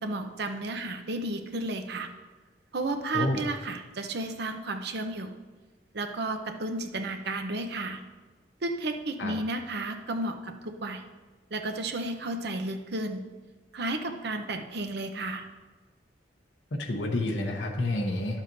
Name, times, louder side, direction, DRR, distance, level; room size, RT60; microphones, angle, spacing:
voice 1, 0.0-2.1 2.7-5.4 5.9-8.0 8.6-11.0 11.5-13.2 13.7-15.5, right 2 dB, 65° right, 6 dB, 0.8 m, -32 dB
voice 2, 16.8-18.4, left 2 dB, 75° left, 1 dB, 0.9 m, -29 dB
12.0 x 7.2 x 2.7 m, 1.3 s
head